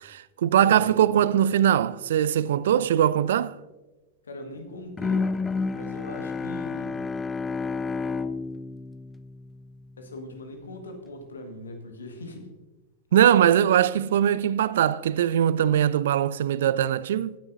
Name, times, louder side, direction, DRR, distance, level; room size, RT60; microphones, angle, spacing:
voice 1, 0.0-3.6 13.1-17.4, right 10 dB, 60° right, 0.3 m, -21 dB
voice 2, 0.6-1.4 4.2-5.3 5.7-7.0 10.0-12.5, left 1 dB, 70° left, 1.6 m, -40 dB
Bowed string instrument, 5.0-10.0, left 4 dB, 15° left, 0.4 m, -30 dB
16.0 x 9.5 x 2.7 m
figure-of-eight pair, 90°, 0 cm